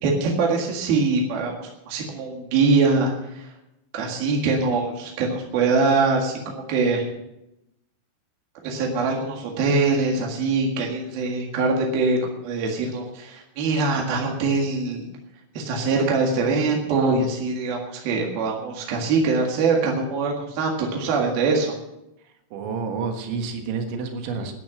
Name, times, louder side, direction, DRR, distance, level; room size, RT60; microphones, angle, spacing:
voice 1, 0.0-3.5 3.9-7.1 8.6-15.0 15.6-21.8, right 3 dB, 60° right, -1 dB, 3.5 m, -23 dB
voice 2, 22.2-24.5, right 5 dB, 85° right, 4 dB, 3.9 m, -29 dB
13.0 x 10.0 x 7.8 m, 0.87 s
omnidirectional pair, 5.3 m